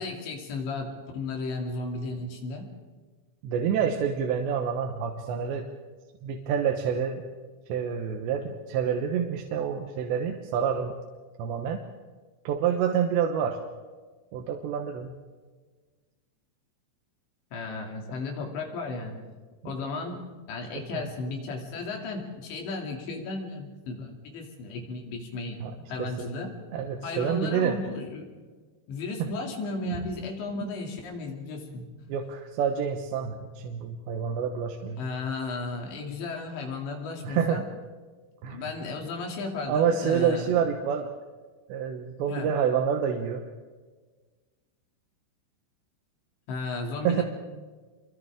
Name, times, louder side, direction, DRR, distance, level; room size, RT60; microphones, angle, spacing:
voice 1, 0.0-2.7 17.5-19.2 19.6-25.6 25.9-26.5 27.0-28.3 28.9-31.9 35.0-37.6 38.5-40.5 42.3-42.5 46.5-47.2, left 3 dB, 75° left, 1 dB, 5.0 m, -34 dB
voice 2, 3.4-5.7 6.2-7.2 7.7-10.9 11.4-11.8 12.4-13.6 14.3-15.1 20.7-20.8 25.6-25.7 26.0-26.3 26.7-27.8 29.2-29.3 29.9-30.0 32.1-35.0 37.2-37.6 38.4-38.6 39.6-41.1 41.7-43.4 47.0-47.2, right 7 dB, 75° right, 3 dB, 3.3 m, -27 dB
29.0 x 24.5 x 3.7 m, 1.4 s
omnidirectional pair, 5.2 m